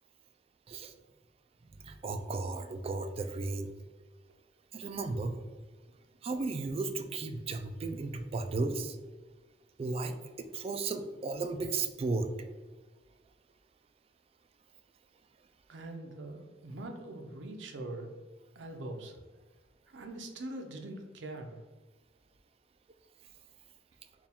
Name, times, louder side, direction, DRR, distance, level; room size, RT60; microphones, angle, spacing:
voice 1, 1.8-3.7 4.7-5.4 6.2-9.0 9.8-12.3, right 3 dB, 30° right, 7 dB, 0.3 m, -34 dB
voice 2, 15.7-18.1 18.6-19.2 19.9-21.6, right 2 dB, 75° right, 3 dB, 0.6 m, -43 dB
4.5 x 2.3 x 3.5 m, 1.3 s
head